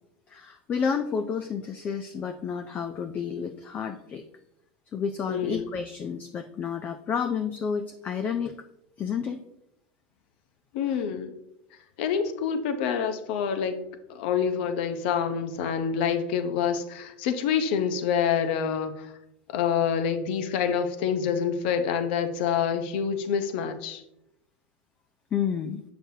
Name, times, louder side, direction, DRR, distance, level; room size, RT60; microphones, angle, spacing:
voice 1, 0.3-4.2 4.9-8.5 9.0-9.4 10.9-11.0 25.3-25.8, left 6 dB, 30° left, 8 dB, 0.4 m, -30 dB
voice 2, 5.3-5.6 10.7-11.3 12.0-13.8 14.1-19.1 19.5-24.0, left 7 dB, 65° left, 9 dB, 0.7 m, -27 dB
6.7 x 6.0 x 2.7 m, 0.80 s
supercardioid pair, 120°, 6 cm